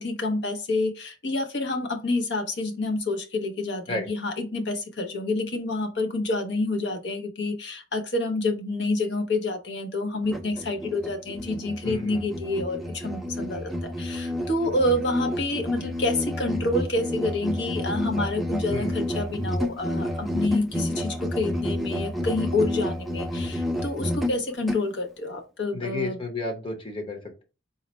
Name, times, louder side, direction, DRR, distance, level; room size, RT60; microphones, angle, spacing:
voice 1, 0.0-26.2, left 2 dB, 70° left, 0.8 m, -28 dB
Musical instrument, 10.2-24.9, left 1 dB, ahead, 0.4 m, -30 dB
voice 2, 11.8-12.2 18.7-19.0 25.7-27.4, left 2 dB, 30° left, 0.8 m, -32 dB
3.9 x 2.1 x 4.1 m
head